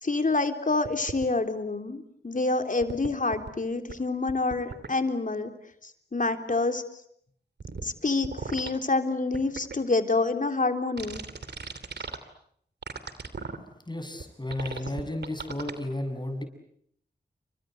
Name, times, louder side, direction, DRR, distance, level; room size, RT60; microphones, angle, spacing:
voice 1, 0.0-5.5 5.8-6.8 7.8-11.2, left 3 dB, 50° left, 7 dB, 3.6 m, -27 dB
sound 1, 0.8-1.3 2.8-3.5 3.9-4.0 4.3-4.9 7.6-7.9 8.2-8.7 9.3-9.8 11.0-12.2 12.8-13.6 14.2-14.3 14.5-15.7, right 4 dB, 75° right, 2.9 m, -36 dB
voice 2, 13.8-16.4, left 1 dB, 25° left, 7 dB, 7.7 m, -33 dB
29.5 x 25.0 x 8.0 m, 0.69 s
cardioid pair, 40°, 18 cm